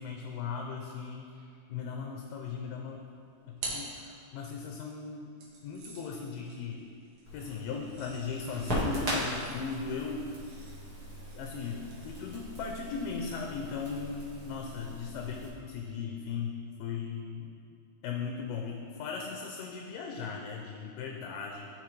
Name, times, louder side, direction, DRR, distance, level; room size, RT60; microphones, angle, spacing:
voice 1, 0.0-3.0 3.5-5.3 5.6-6.9 7.3-10.3 11.3-17.5 18.0-21.7, left 5 dB, 80° left, 1 dB, 2.2 m, -38 dB
sound 1, 2.9-4.7 5.4-13.0, right 3 dB, 75° right, 2.9 m, -48 dB
Crackle, 7.2-15.5, right 1 dB, 40° right, 1.4 m, -39 dB
12.0 x 4.3 x 3.2 m, 2.4 s
omnidirectional pair, 4.1 m